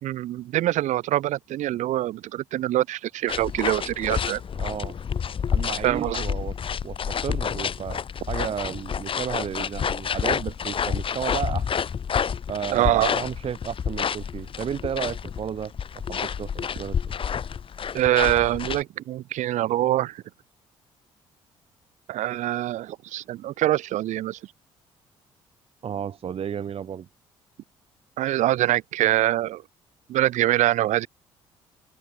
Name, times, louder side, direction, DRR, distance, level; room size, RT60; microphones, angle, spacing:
voice 1, 0.0-4.4 5.8-6.2 12.7-13.2 17.9-20.2 22.1-24.4 28.2-29.6 30.1-31.1, right 14 dB, 70° right, 1.8 m, -24 dB
sound 1, 3.3-18.8, left 7 dB, 45° left, 1.0 m, -29 dB
voice 2, 4.6-4.9 5.5-6.5 6.8-8.0 8.3-11.7 12.5-15.7 16.1-16.9 25.8-27.1, right 8 dB, 50° right, 1.2 m, -32 dB
supercardioid pair, 60°, 13 cm